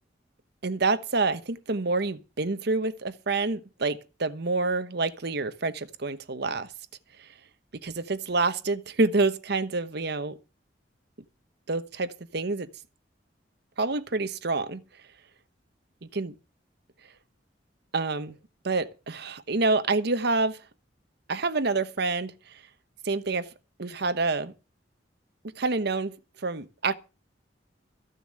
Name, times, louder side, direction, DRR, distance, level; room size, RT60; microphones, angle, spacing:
voice 1, 0.6-6.7 7.8-10.4 11.7-12.7 13.8-14.8 16.2-16.3 17.9-18.4 18.6-20.6 21.3-22.6 23.0-23.5 23.8-24.5 25.6-26.1 26.4-26.9, right 3 dB, 65° right, 1.1 m, -27 dB
14.5 x 7.0 x 7.4 m
head